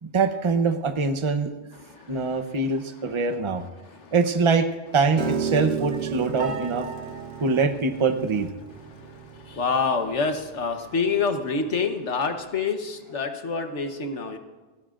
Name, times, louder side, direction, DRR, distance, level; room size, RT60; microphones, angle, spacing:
voice 1, 0.0-1.5 2.1-3.6 4.1-4.7 4.9-6.9 7.4-8.5, right 4 dB, 30° right, 8 dB, 0.8 m, -23 dB
voice 2, 1.8-2.4 3.9-4.1 7.1-7.4 8.7-14.4, left 4 dB, 70° left, 6 dB, 1.5 m, -28 dB
Piano, 5.2-11.4, right 7 dB, 85° right, 1.3 m, -33 dB
28.0 x 16.0 x 2.5 m, 1.2 s
omnidirectional pair, 1.3 m